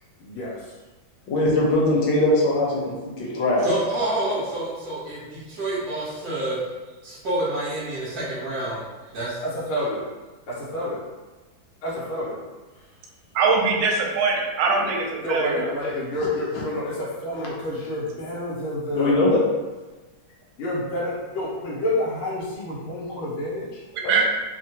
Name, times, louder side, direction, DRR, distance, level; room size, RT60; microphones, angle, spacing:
voice 1, 0.2-0.8 6.1-6.2 9.4-10.0 10.5-11.0 11.8-12.4 12.8-12.9 15.2-19.3 20.6-23.8, left 1 dB, 90° left, -7 dB, 1.6 m, -29 dB
voice 2, 1.3-3.7 17.3-17.4 18.9-19.4 24.0-24.2, left 2 dB, 70° left, -4 dB, 1.4 m, -21 dB
voice 3, 3.6-6.6 7.0-8.8 9.1-9.4, right 1 dB, 55° right, -8 dB, 1.2 m, -28 dB
voice 4, 13.3-15.7 23.9-24.2, right 4 dB, 75° right, -1 dB, 1.3 m, -22 dB
3.6 x 2.1 x 2.8 m, 1.2 s
omnidirectional pair, 2.2 m